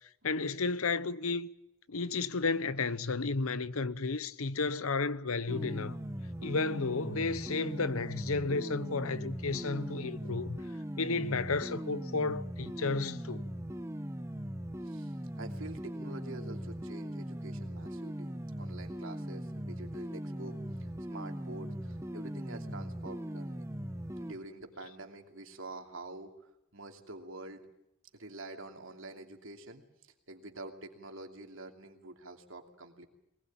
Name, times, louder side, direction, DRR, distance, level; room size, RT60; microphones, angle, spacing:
voice 1, 0.2-1.5 1.9-6.0 6.4-10.6 11.0-13.4, left 4 dB, 85° left, 0.9 m, -32 dB
sound 1, 5.5-24.3, equal, 15° right, 0.9 m, -40 dB
voice 2, 14.8-23.7 24.2-27.6 28.1-29.8 30.3-33.0, right 2 dB, 70° right, 2.8 m, -47 dB
22.0 x 20.5 x 8.8 m
head